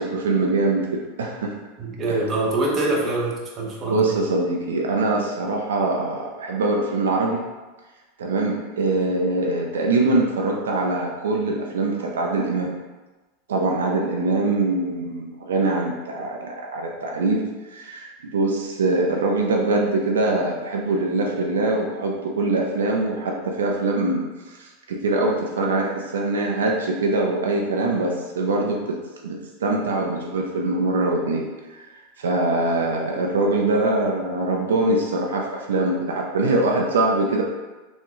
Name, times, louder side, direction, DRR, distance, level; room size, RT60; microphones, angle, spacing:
voice 1, 0.0-1.5 2.1-2.2 3.8-7.4 8.2-12.7 13.5-17.4 17.7-31.5 31.8-31.9 32.2-37.4, right 2 dB, 90° right, 0 dB, 0.4 m, -23 dB
voice 2, 1.8-4.1, right 2 dB, 30° right, -2 dB, 0.8 m, -24 dB
3.5 x 2.1 x 2.9 m, 1.2 s
hypercardioid pair, 110°, 0 cm